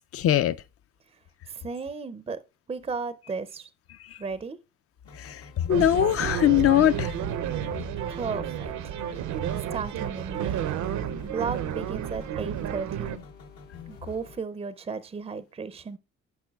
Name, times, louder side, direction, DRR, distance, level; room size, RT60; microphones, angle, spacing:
voice 1, 0.1-0.5 5.2-5.4 5.7-7.1, left 12 dB, 50° left, 0.4 m, -21 dB
voice 2, 1.5-2.4 2.7-3.7 4.2-4.6 8.1-8.9 9.5-10.7 11.2-13.2 13.9-16.0, right 5 dB, 20° right, 0.4 m, -35 dB
sound 1, 5.0-14.4, left 6 dB, 80° left, 1.2 m, -47 dB
sound 2, 5.7-13.2, right 10 dB, 70° right, 0.6 m, -31 dB
10.5 x 5.4 x 2.3 m
cardioid pair, 90°, 30 cm